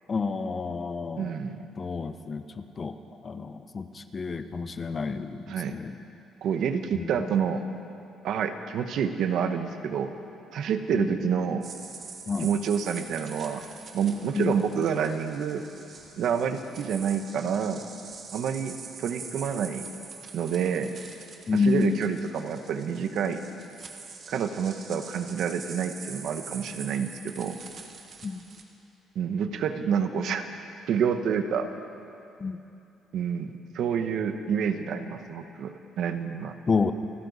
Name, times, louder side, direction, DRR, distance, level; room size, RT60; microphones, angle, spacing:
voice 1, 0.1-1.3 1.8-3.0 3.2-5.9 6.9-7.2 10.9-11.4 12.3-12.5 14.3-14.6 21.5-22.0 28.2-28.5 32.4-32.6 36.7-36.9, left 4 dB, 25° left, 10 dB, 0.6 m, -29 dB
voice 2, 1.2-1.7 5.5-5.8 6.4-7.6 8.2-10.1 10.5-11.7 12.4-13.6 13.9-15.7 16.2-17.8 18.3-19.9 20.3-20.9 21.5-23.4 24.3-27.6 29.1-30.5 30.9-31.7 33.1-36.5, right 7 dB, 60° right, 8 dB, 0.9 m, -28 dB
sound 1, 11.6-28.6, right 5 dB, 40° right, 1.3 m, -45 dB
27.5 x 13.0 x 4.0 m, 2.8 s
cardioid pair, 160°, 0 cm